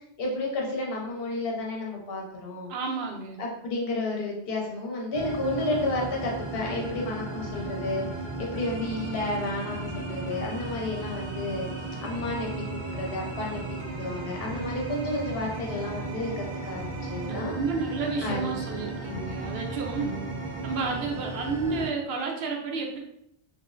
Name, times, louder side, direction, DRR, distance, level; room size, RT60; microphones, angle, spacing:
voice 1, 0.2-2.7 3.4-8.1 8.4-11.7 12.0-13.6 14.0-17.5 18.2-18.5 19.9-20.4, left 2 dB, 65° left, -1 dB, 0.9 m, -31 dB
voice 2, 2.7-3.4 17.3-20.2 20.6-23.0, right 4 dB, 70° right, 1 dB, 0.8 m, -31 dB
sound 1, 5.1-21.9, right 2 dB, 50° right, 0.3 m, -35 dB
2.9 x 2.4 x 2.4 m, 0.76 s
omnidirectional pair, 1.1 m